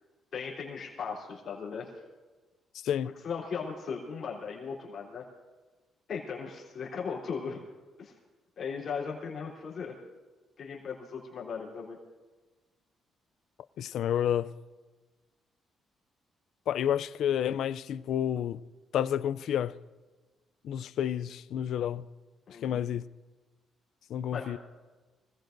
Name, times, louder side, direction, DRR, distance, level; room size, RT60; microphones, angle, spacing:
voice 1, 0.3-1.9 3.2-5.3 6.1-7.6 8.0-8.1 8.6-10.0 10.6-12.0 22.5-22.8 24.3-24.5, left 6 dB, 50° left, 3.3 m, -37 dB
voice 2, 13.8-14.5 16.7-18.6 18.9-19.8 20.6-22.1 22.6-23.1 24.1-24.6, left 10 dB, 70° left, 0.4 m, -30 dB
25.0 x 18.0 x 2.6 m
cardioid pair, 120°, 0 cm